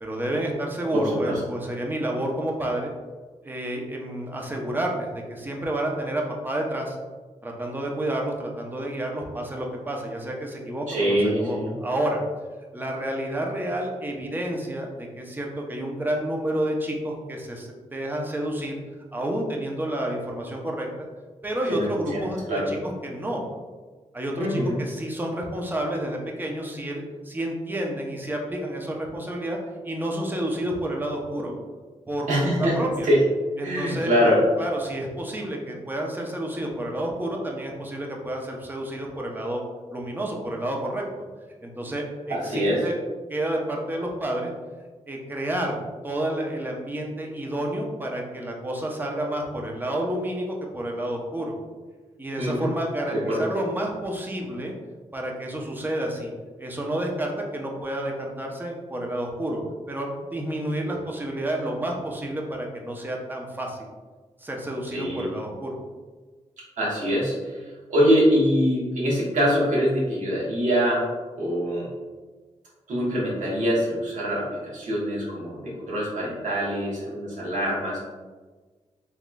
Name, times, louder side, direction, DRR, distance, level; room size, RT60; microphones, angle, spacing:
voice 1, 0.0-2.9 3.4-7.0 7.4-12.2 12.7-18.7 19.1-21.1 21.4-22.8 23.0-23.4 24.1-29.6 29.8-31.5 32.1-33.1 33.6-39.6 39.9-41.1 41.6-43.0 43.3-44.5 45.1-51.5 52.2-54.7 55.1-56.3 56.6-59.6 59.9-63.9 64.4-65.8, right 1 dB, 15° right, 0 dB, 0.6 m, -30 dB
voice 2, 0.9-1.4 10.9-11.7 21.7-22.7 24.4-24.8 32.3-32.8 33.0-33.2 33.6-34.4 42.3-42.8 52.4-52.7 53.1-53.4 64.9-65.3 66.8-71.0 71.4-71.9 72.9-78.0, equal, 85° right, -6 dB, 1.2 m, -24 dB
3.6 x 3.0 x 2.2 m, 1.4 s
cardioid pair, 85°, 12 cm